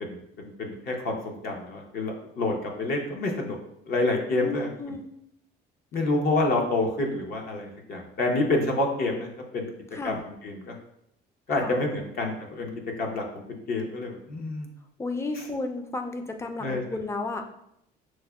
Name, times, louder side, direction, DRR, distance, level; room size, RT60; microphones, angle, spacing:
voice 1, 0.6-3.6 3.9-4.7 5.9-9.7 10.0-10.8 11.5-12.7 13.0-13.2 13.7-14.7 16.6-16.8, left 2 dB, 60° left, 1 dB, 0.8 m, -28 dB
voice 2, 4.4-5.1 9.9-10.2 11.6-11.8 15.0-17.4, left 3 dB, 15° left, 6 dB, 0.4 m, -33 dB
6.1 x 2.1 x 2.3 m, 0.78 s
cardioid pair, 110°, 17 cm